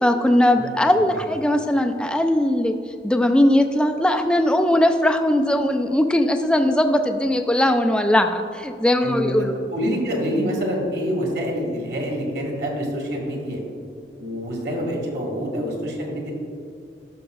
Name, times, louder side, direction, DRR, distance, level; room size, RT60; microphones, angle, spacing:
voice 1, 0.0-2.8 3.0-9.5, left 1 dB, 5° left, 6 dB, 0.3 m, -19 dB
voice 2, 0.6-1.2 9.0-13.6 14.2-16.3, equal, 65° right, -1 dB, 1.8 m, -26 dB
12.0 x 6.3 x 2.3 m, 2.4 s
head